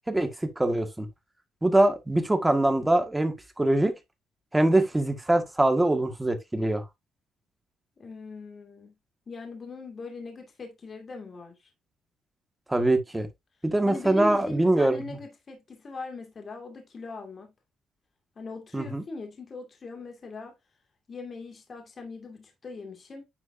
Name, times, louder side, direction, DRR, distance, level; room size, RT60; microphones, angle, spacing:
voice 1, 0.6-1.1 1.6-3.9 4.5-6.8 12.7-13.3 13.6-15.0 18.7-19.0, right 1 dB, 10° right, 1.8 m, -23 dB
voice 2, 8.0-8.9 9.3-11.7 13.8-17.5 18.4-20.6 21.1-23.3, left 3 dB, 40° left, 2.4 m, -40 dB
10.0 x 4.5 x 2.7 m
cardioid pair, 90°, 0 cm